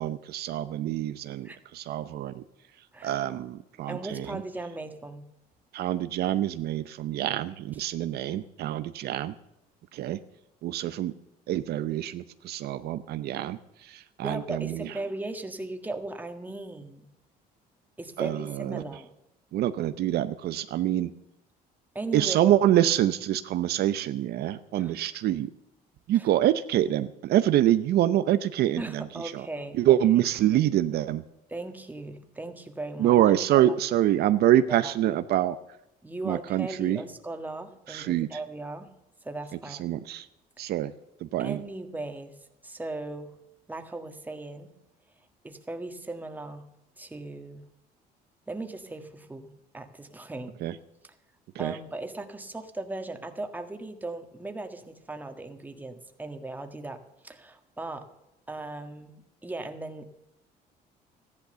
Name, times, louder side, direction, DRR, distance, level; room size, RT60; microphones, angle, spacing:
voice 1, 0.0-2.4 3.0-4.4 5.7-9.4 9.9-10.2 10.6-11.1 11.5-14.9 18.2-18.8 19.5-21.1 22.1-25.5 26.1-29.5 29.7-31.2 33.0-35.6 36.2-37.0 37.9-38.4 39.7-40.3 40.6-40.9 41.2-41.6 50.6-50.8 51.5-51.8, right 12 dB, 70° right, 12 dB, 0.7 m, -26 dB
voice 2, 3.9-5.2 8.3-8.4 14.2-17.1 18.0-19.1 22.0-22.6 24.8-24.9 26.1-26.3 28.8-30.0 31.5-33.2 33.5-33.7 34.7-34.9 36.0-38.9 39.2-39.9 41.4-42.3 42.6-43.4 43.7-44.7 45.4-46.7 47.0-47.6 48.5-50.5 51.6-58.1 58.5-59.2 59.4-60.2, right 2 dB, 10° right, 6 dB, 1.7 m, -37 dB
14.0 x 11.0 x 6.8 m, 0.89 s
cardioid pair, 110°, 17 cm